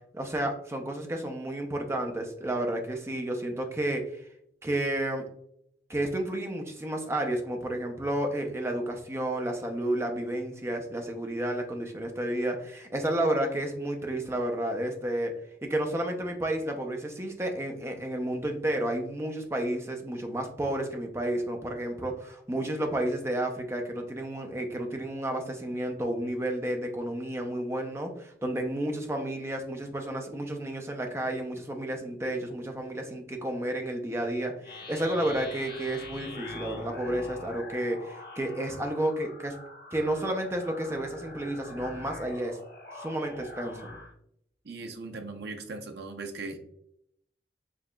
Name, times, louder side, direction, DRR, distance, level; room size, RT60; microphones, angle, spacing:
voice 1, 0.1-4.2 4.6-5.2 5.9-15.3 15.7-39.5 39.9-42.6 42.9-43.8, right 1 dB, 15° right, 3 dB, 0.5 m, -31 dB
sound 1, 34.6-44.1, left 2 dB, 60° left, 1.0 m, -44 dB
voice 2, 44.6-46.6, right 3 dB, 65° right, 5 dB, 0.6 m, -39 dB
4.9 x 2.8 x 2.2 m, 0.72 s
head